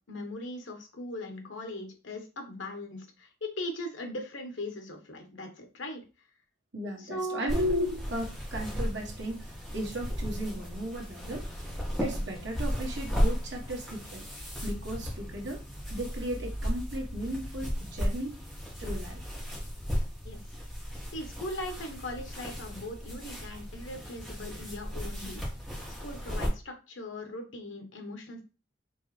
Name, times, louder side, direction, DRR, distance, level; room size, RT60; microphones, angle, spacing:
voice 1, 0.1-6.0 7.0-7.5 20.2-20.4 21.1-25.4 26.0-28.4, left 1 dB, 75° left, 4 dB, 1.2 m, -39 dB
voice 2, 6.7-11.5 12.0-14.2 14.6-15.6 15.9-18.4 18.8-19.2, equal, 65° right, 0 dB, 1.4 m, -35 dB
sound 1, 7.5-26.5, equal, ahead, 1.6 m, -35 dB
4.5 x 3.6 x 3.3 m, 0.32 s
head